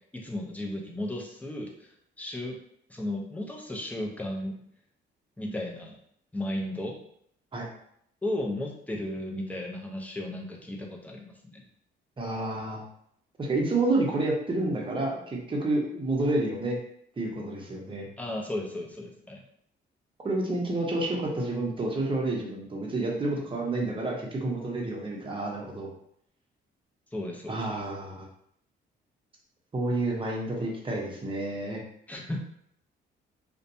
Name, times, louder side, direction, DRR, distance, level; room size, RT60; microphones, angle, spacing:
voice 1, 0.1-1.9 2.2-2.6 2.9-4.6 5.4-6.0 6.3-7.0 8.2-11.6 18.2-19.4 27.1-27.8 32.1-32.4, left 1 dB, 5° left, 0 dB, 0.5 m, -34 dB
voice 2, 12.2-12.8 13.4-16.8 17.2-18.1 20.2-25.9 27.5-28.3 29.7-31.8, right 2 dB, 25° right, -2 dB, 0.8 m, -29 dB
2.6 x 2.2 x 2.6 m, 0.69 s
cardioid pair, 90°, 20 cm